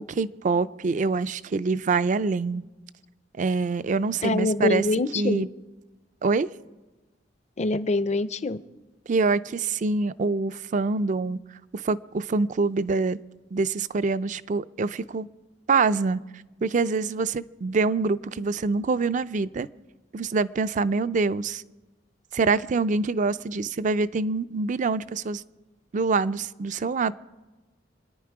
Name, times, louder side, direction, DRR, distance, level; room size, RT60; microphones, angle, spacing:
voice 1, 0.0-2.6 3.4-4.9 5.2-5.5 6.2-6.5 9.1-11.4 11.7-13.2 13.5-15.3 15.7-16.2 16.6-19.7 20.1-21.6 22.3-25.4 25.9-27.1, right 4 dB, 40° right, 16 dB, 0.4 m, -25 dB
voice 2, 4.2-5.4 7.6-8.6, left 2 dB, 35° left, 15 dB, 0.5 m, -24 dB
26.0 x 10.5 x 4.8 m, 1.2 s
head